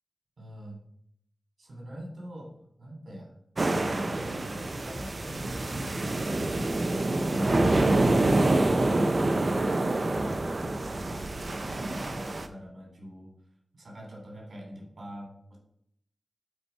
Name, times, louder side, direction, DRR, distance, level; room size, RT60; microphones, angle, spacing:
voice 1, 0.4-0.8 1.6-3.3 4.0-6.4 10.8-13.3 13.8-15.6, equal, 80° right, 0 dB, 2.8 m, -44 dB
sound 1, 3.6-12.5, right 2 dB, 50° right, 0.7 m, -26 dB
8.6 x 4.4 x 4.5 m, 0.71 s
wide cardioid pair, 100°, 0 cm